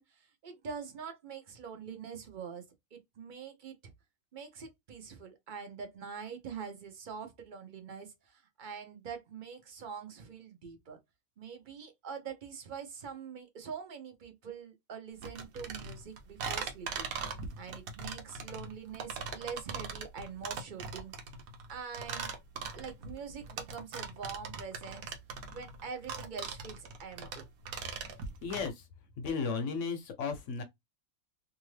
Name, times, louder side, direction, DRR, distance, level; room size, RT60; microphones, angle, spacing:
voice 1, 0.0-3.9 4.3-11.0 11.4-21.1 21.7-22.3 22.7-25.1 25.5-27.5, right 6 dB, 45° right, 0.7 m, -44 dB
sound 1, 15.2-28.7, right 5 dB, 85° right, 1.1 m, -40 dB
voice 2, 28.4-28.9 29.2-30.6, left 5 dB, 65° left, 0.9 m, -34 dB
2.7 x 2.5 x 3.1 m
omnidirectional pair, 1.4 m